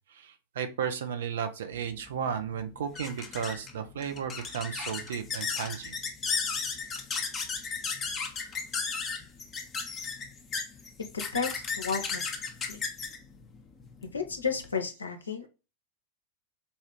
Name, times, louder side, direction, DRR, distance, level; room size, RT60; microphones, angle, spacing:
voice 1, 0.1-5.9, right 7 dB, 60° right, 8 dB, 0.5 m, -34 dB
sound 1, 1.8-14.7, left 5 dB, 20° left, 0.6 m, -35 dB
voice 2, 11.1-12.2 12.7-12.8 14.1-15.5, left 5 dB, 75° left, 6 dB, 0.5 m, -32 dB
4.1 x 2.4 x 3.0 m, 0.31 s
figure-of-eight pair, 90°, 0 cm